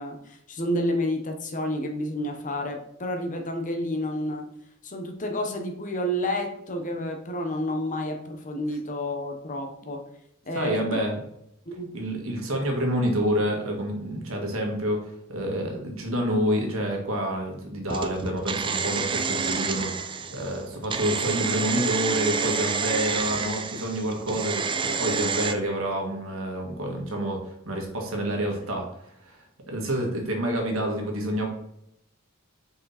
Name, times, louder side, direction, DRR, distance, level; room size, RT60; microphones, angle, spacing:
voice 1, 0.0-4.5 4.8-10.0 10.4-11.0 11.7-11.9, left 1 dB, 40° left, 4 dB, 1.0 m, -30 dB
voice 2, 10.6-11.1 11.9-19.9 20.3-24.7 25.0-28.9 29.3-31.5, equal, 70° right, 1 dB, 1.8 m, -28 dB
sound 1, 17.9-25.5, right 5 dB, 25° right, 0.4 m, -29 dB
6.0 x 4.8 x 4.2 m, 0.77 s
head